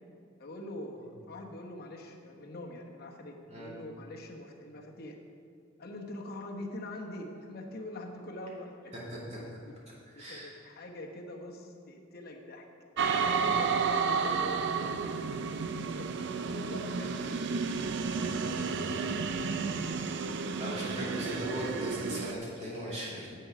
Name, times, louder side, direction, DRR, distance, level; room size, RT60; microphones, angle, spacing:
voice 1, 0.4-5.2 5.8-8.9 9.4-9.5 10.1-12.6 13.1-16.1 16.5-17.8 18.2-19.5, left 1 dB, 50° left, 1 dB, 1.2 m, -44 dB
voice 2, 3.5-3.8 9.1-9.4 10.1-10.5 13.3-13.7 20.6-23.3, equal, 35° right, -6 dB, 2.8 m, -39 dB
sound 1, 13.0-22.3, right 5 dB, 60° right, 0.4 m, -31 dB
9.8 x 7.8 x 4.9 m, 2.3 s
head